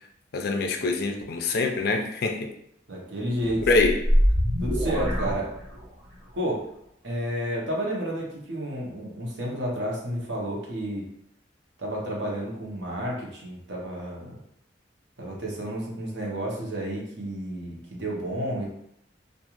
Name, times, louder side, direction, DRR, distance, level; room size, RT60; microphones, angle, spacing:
voice 1, 0.3-2.5 3.7-3.9, left 3 dB, 55° left, 3 dB, 0.4 m, -24 dB
voice 2, 2.9-3.7 4.6-5.5 6.4-6.6 7.0-11.0 11.8-14.4 15.2-18.7, right 1 dB, 70° right, -3 dB, 0.8 m, -31 dB
sound 1, 3.5-6.1, equal, 55° right, 1.3 m, -24 dB
2.4 x 2.4 x 3.0 m, 0.74 s
head